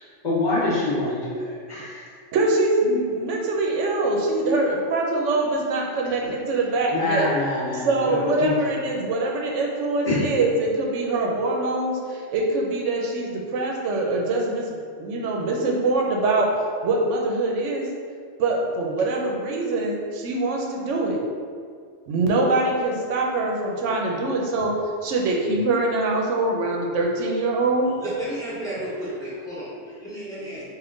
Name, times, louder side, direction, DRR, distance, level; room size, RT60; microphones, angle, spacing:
voice 1, 0.2-2.0 6.2-6.3 6.9-8.0 8.4-8.5 10.0-10.2, left 2 dB, 40° left, -8 dB, 1.1 m, -25 dB
voice 2, 2.3-7.3 7.7-16.5 16.8-17.9 18.4-21.2 22.1-24.7 25.0-27.9, right 2 dB, 80° right, -1 dB, 0.9 m, -24 dB
voice 3, 28.0-30.8, equal, 5° left, -10 dB, 1.0 m, -33 dB
3.5 x 2.5 x 3.8 m, 2.1 s
omnidirectional pair, 1.3 m